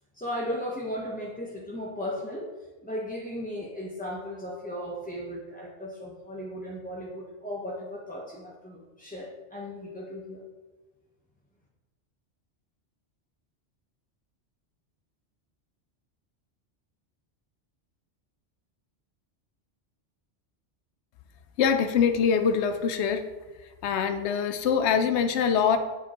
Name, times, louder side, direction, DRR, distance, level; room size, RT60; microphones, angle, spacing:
voice 1, 0.1-2.5 2.8-10.4, equal, 10° left, -4 dB, 0.5 m, -36 dB
voice 2, 21.6-23.2 23.8-25.8, left 7 dB, 75° left, 9 dB, 0.9 m, -24 dB
9.6 x 4.4 x 2.9 m, 1.2 s
omnidirectional pair, 1.2 m